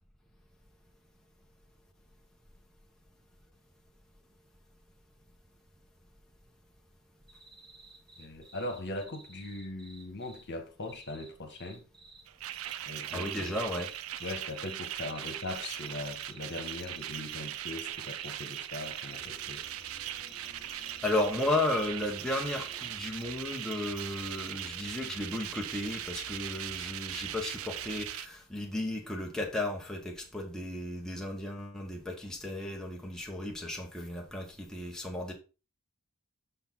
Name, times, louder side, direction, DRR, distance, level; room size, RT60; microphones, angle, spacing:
sound 1, 7.3-10.4 10.8-12.2 12.5-17.5 17.8-24.5, right 3 dB, 20° right, 1.6 m, -54 dB
voice 1, 8.2-11.8 12.8-13.6 14.2-19.6, left 2 dB, 50° left, 1.5 m, -40 dB
sound 2, 12.3-28.3, right 12 dB, 65° right, 0.5 m, -40 dB
voice 2, 13.1-13.9 20.5-35.3, left 1 dB, ahead, 1.1 m, -34 dB
sound 3, 19.1-28.1, left 1 dB, 25° left, 1.2 m, -57 dB
6.7 x 5.8 x 3.9 m
head